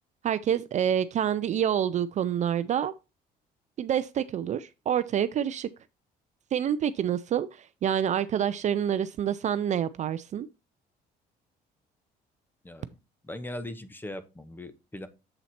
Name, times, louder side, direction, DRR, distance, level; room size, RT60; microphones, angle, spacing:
voice 1, 0.2-2.9 3.8-5.7 6.5-10.5, right 9 dB, 45° right, 0.4 m, -27 dB
voice 2, 12.6-13.0 13.2-15.1, left 1 dB, 10° left, 0.8 m, -39 dB
7.8 x 4.0 x 4.2 m
cardioid pair, 110°, 17 cm